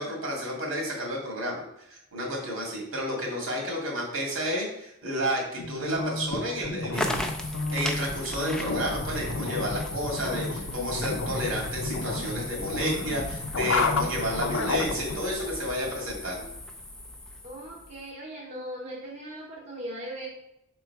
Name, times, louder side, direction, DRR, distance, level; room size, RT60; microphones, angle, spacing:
voice 1, 0.0-1.6 1.9-7.3 7.7-16.5, equal, 75° right, -1 dB, 2.2 m, -31 dB
sound 1, 5.6-15.2, left 3 dB, 70° left, 0.6 m, -32 dB
sound 2, 6.9-18.1, left 1 dB, 5° left, 0.5 m, -37 dB
voice 2, 17.4-20.3, right 1 dB, 30° right, -3 dB, 0.9 m, -39 dB
6.0 x 3.9 x 4.5 m, 0.81 s
head